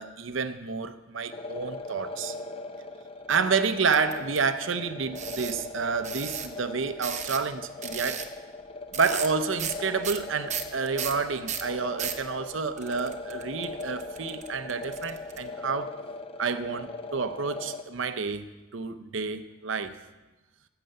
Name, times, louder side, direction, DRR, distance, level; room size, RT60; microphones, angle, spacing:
voice 1, 0.0-2.3 3.3-8.2 8.9-15.9 16.4-18.4 18.7-20.0, right 5 dB, 70° right, 0.7 m, -29 dB
sound 1, 1.3-17.8, left 3 dB, 30° left, 0.7 m, -39 dB
sound 2, 3.9-4.4 5.1-5.6 6.0-6.5 7.0-7.5 7.8-8.3 8.9-9.3 9.6-9.8 10.0-12.2 12.8-15.4, right 8 dB, 35° right, 0.8 m, -35 dB
15.5 x 6.7 x 6.6 m
head